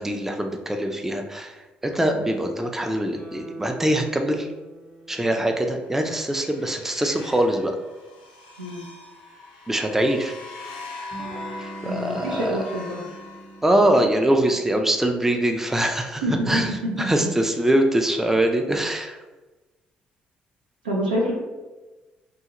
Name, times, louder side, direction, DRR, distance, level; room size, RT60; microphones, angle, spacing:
voice 1, 0.0-1.6 1.8-4.5 5.1-7.8 9.7-10.4 11.6-12.6 13.6-16.7 17.0-19.2, right 1 dB, 10° right, 4 dB, 0.4 m, -23 dB
Guitar, 3.1-6.4 6.8-6.9, right 2 dB, 70° right, 0.9 m, -44 dB
sound 1, 5.8-14.0, left 3 dB, 85° left, 0.3 m, -42 dB
Electric guitar / Strum, 11.1-16.5, right 2 dB, 40° right, 0.8 m, -42 dB
voice 2, 11.8-13.0 16.2-17.1 20.8-21.3, equal, 90° right, -3 dB, 0.5 m, -26 dB
2.8 x 2.3 x 2.9 m, 1.2 s
hypercardioid pair, 45°, 5 cm